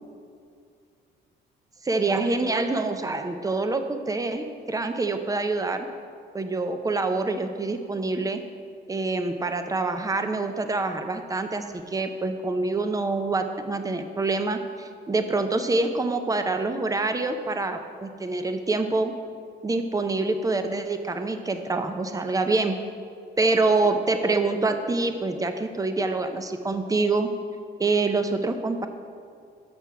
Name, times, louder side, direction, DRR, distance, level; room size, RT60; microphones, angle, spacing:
voice 1, 1.8-5.9 6.3-8.4 8.9-19.1 19.6-22.8 23.4-27.3 27.8-28.9, right 3 dB, 15° right, 7 dB, 0.6 m, -26 dB
6.6 x 6.0 x 5.6 m, 2.2 s
cardioid pair, 90°, 20 cm